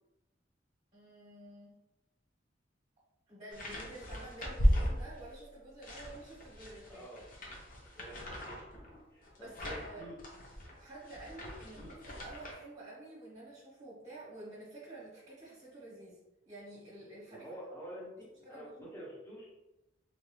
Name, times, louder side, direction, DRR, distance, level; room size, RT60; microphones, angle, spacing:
voice 1, 0.9-1.8 3.3-7.1 9.4-10.1 10.8-16.2 16.4-17.5 18.4-18.7, right 2 dB, 35° right, -8 dB, 1.1 m, -50 dB
sound 1, 3.5-5.4 5.8-12.5, equal, 45° left, 0.8 m, -36 dB
voice 2, 6.9-7.2 7.9-10.2 11.7-11.9 17.3-18.1 18.5-19.5, equal, 15° left, -6 dB, 1.0 m, -48 dB
3.3 x 2.6 x 3.1 m, 0.96 s
head